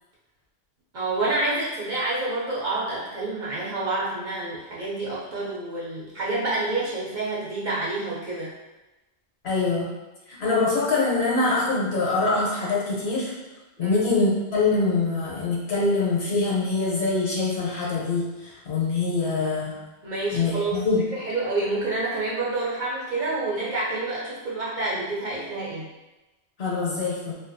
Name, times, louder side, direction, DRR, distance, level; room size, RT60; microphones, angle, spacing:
voice 1, 0.9-8.5 13.8-14.0 20.0-20.8 21.1-25.9, right 2 dB, 55° right, -6 dB, 0.6 m, -28 dB
voice 2, 9.4-9.9 10.4-13.3 13.8-19.7 20.3-21.0 26.6-27.3, left 3 dB, 75° left, -4 dB, 0.9 m, -24 dB
2.3 x 2.2 x 2.5 m, 1.1 s
omnidirectional pair, 1.1 m